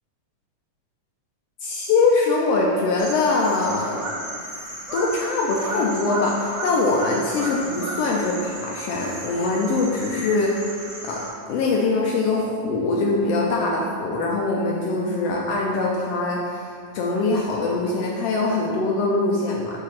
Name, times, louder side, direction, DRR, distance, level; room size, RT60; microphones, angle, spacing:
voice 1, 1.6-4.1 4.9-10.7 11.0-11.2 11.5-19.8, left 3 dB, 80° left, -2 dB, 1.4 m, -23 dB
sound 1, 3.0-11.3, right 1 dB, 55° right, 0.7 m, -34 dB
6.4 x 3.4 x 5.7 m, 2.2 s
omnidirectional pair, 3.4 m